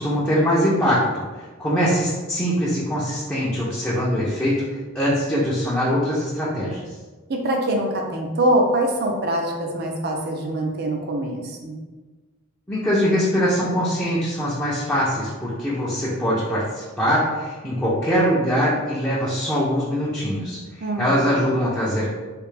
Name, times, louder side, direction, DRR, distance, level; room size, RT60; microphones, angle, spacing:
voice 1, 0.0-6.8 12.7-22.1, equal, 10° left, -9 dB, 0.6 m, -22 dB
voice 2, 7.3-11.8 20.8-21.3, right 1 dB, 50° right, 1 dB, 0.6 m, -24 dB
3.3 x 2.9 x 3.3 m, 1.3 s
head